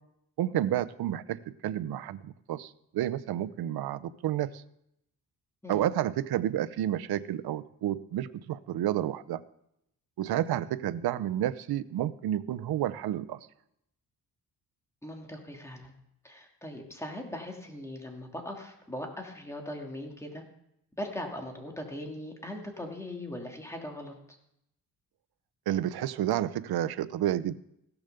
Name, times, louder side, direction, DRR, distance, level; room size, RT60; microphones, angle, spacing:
voice 1, 0.4-4.6 5.7-9.4 10.2-13.5 25.7-27.6, right 12 dB, 75° right, 13 dB, 0.7 m, -30 dB
voice 2, 15.0-15.9 16.2-20.4 21.0-24.1, left 1 dB, 5° left, 1 dB, 2.6 m, -40 dB
15.5 x 7.0 x 6.8 m, 0.78 s
cardioid pair, 105°, 37 cm